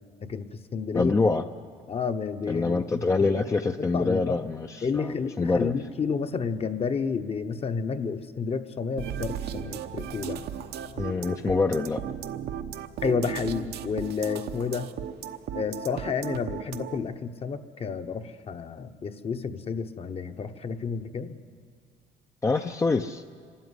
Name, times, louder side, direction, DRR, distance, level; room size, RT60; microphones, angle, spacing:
voice 1, 0.2-1.2 1.9-3.4 3.9-4.4 4.8-10.4 13.0-14.9 15.5-21.3, left 5 dB, 35° left, 8 dB, 1.0 m, -30 dB
voice 2, 0.9-1.4 2.5-5.7 11.0-12.0 22.4-23.2, left 3 dB, 20° left, 6 dB, 0.5 m, -25 dB
sound 1, 9.0-17.0, right 9 dB, 75° right, 1.0 m, -35 dB
25.0 x 13.0 x 9.8 m, 2.1 s
cardioid pair, 110°, 17 cm